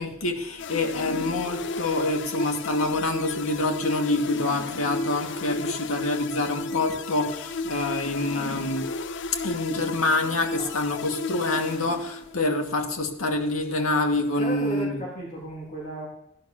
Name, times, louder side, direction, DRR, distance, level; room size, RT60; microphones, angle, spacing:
voice 1, 0.0-8.8 9.4-15.0, left 2 dB, 90° left, 3 dB, 2.5 m, -26 dB
sound 1, 0.6-12.5, left 3 dB, 60° left, 0.6 m, -34 dB
voice 2, 14.4-16.1, right 1 dB, 35° left, -3 dB, 3.5 m, -34 dB
16.5 x 10.5 x 6.9 m, 0.79 s
head